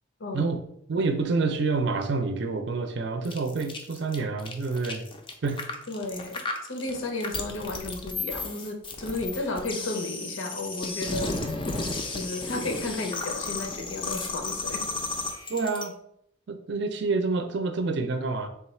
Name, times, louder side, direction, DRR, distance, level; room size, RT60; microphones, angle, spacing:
voice 1, 0.9-5.0 5.4-5.6 15.5-15.9 16.5-18.5, right 3 dB, 55° right, 7 dB, 0.5 m, -27 dB
sound 1, 3.2-15.9, left 3 dB, 25° left, 0.4 m, -34 dB
voice 2, 5.9-6.4 6.7-11.5 12.1-14.8, left 2 dB, 70° left, 2 dB, 0.7 m, -33 dB
3.5 x 2.3 x 4.2 m, 0.71 s
head